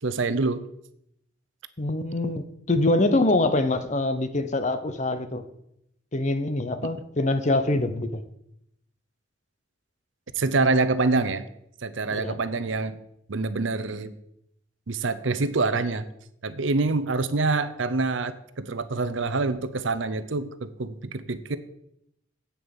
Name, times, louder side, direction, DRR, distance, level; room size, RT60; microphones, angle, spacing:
voice 1, 0.0-0.6 10.4-11.5 11.8-13.0 13.3-14.1 14.9-16.0 16.4-21.6, right 3 dB, 70° right, 13 dB, 0.7 m, -26 dB
voice 2, 1.8-5.4 6.1-8.2 12.1-12.3, left 2 dB, 35° left, 10 dB, 0.8 m, -24 dB
8.6 x 6.9 x 7.1 m, 0.76 s
head